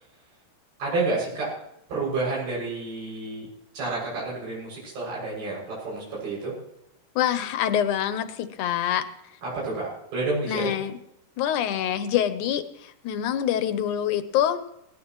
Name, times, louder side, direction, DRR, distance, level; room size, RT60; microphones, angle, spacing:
voice 1, 0.8-1.5 1.9-3.5 3.7-6.5 9.4-10.8, right 3 dB, 85° right, -6 dB, 9.0 m, -29 dB
voice 2, 7.2-9.1 10.5-11.0 11.4-14.7, left 10 dB, 70° left, 10 dB, 2.1 m, -25 dB
20.5 x 18.5 x 3.2 m, 0.83 s
omnidirectional pair, 4.4 m